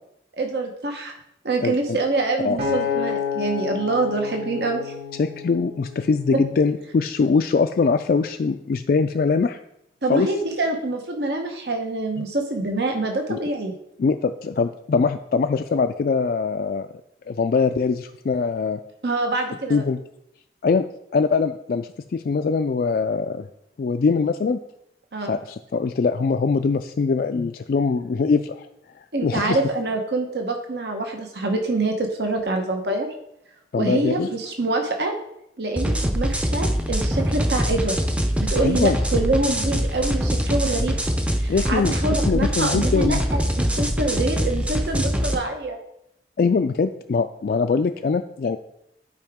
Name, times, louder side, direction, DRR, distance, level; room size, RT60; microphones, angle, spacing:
voice 1, 0.3-1.2 1.4-4.9 10.0-13.7 19.0-19.8 25.1-25.3 29.1-33.1 33.8-35.1 35.6-38.0 38.4-41.0 41.4-45.8, right 2 dB, 70° right, 3 dB, 1.0 m, -25 dB
voice 2, 1.6-2.0 2.4-2.6 5.2-9.6 10.1-10.3 12.2-12.3 13.3-13.4 14.0-16.9 17.3-18.8 19.7-20.0 20.6-20.9 21.1-23.5 23.8-24.6 25.3-28.7 29.0-29.6 33.7-34.3 38.6-39.0 41.5-42.0 42.3-43.2 46.4-48.6, left 4 dB, 55° left, 8 dB, 0.3 m, -22 dB
Acoustic guitar, 2.6-6.9 7.5-7.8, left 6 dB, 55° right, 3.2 m, -30 dB
sound 1, 35.8-45.3, equal, 5° right, 0.5 m, -23 dB
12.0 x 4.8 x 3.6 m, 0.80 s
head